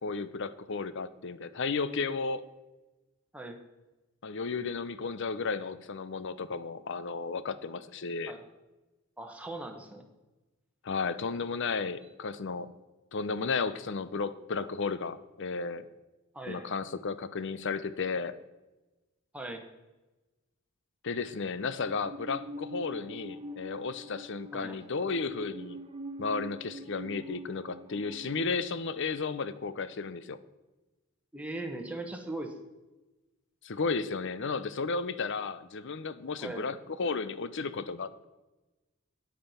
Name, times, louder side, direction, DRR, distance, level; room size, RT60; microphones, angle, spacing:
voice 1, 0.0-2.4 4.2-8.3 10.8-12.7 13.1-15.9 16.5-18.3 21.0-25.8 26.2-30.4 33.6-38.2, left 4 dB, 55° left, 15 dB, 0.6 m, -33 dB
voice 2, 9.2-10.1 16.3-16.7 19.3-19.6 24.5-24.8 31.3-32.5 36.4-36.6, right 2 dB, 5° right, 3 dB, 1.1 m, -39 dB
Musical instrument, 21.6-28.5, equal, 25° right, 0.8 m, -44 dB
9.1 x 8.5 x 5.6 m, 1.1 s
head